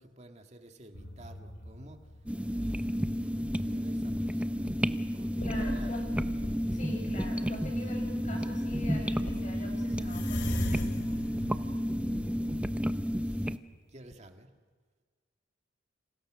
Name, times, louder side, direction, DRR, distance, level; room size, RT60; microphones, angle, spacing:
voice 1, 0.0-2.1 2.5-2.8 3.4-6.0 11.6-13.6 13.9-14.5, right 1 dB, 35° right, 5 dB, 2.0 m, -54 dB
sound 1, 0.9-3.0 3.6-4.2 4.7-4.8 5.4-7.0 7.7-7.9 8.4-8.5 8.7-13.8 14.1-14.2, left 1 dB, 60° left, 2.7 m, -40 dB
sound 2, 2.3-13.6, equal, 5° right, 0.7 m, -31 dB
voice 2, 5.4-6.0 6.7-10.6, left 1 dB, 40° left, 1 dB, 7.6 m, -43 dB
29.5 x 27.5 x 6.3 m, 1.5 s
head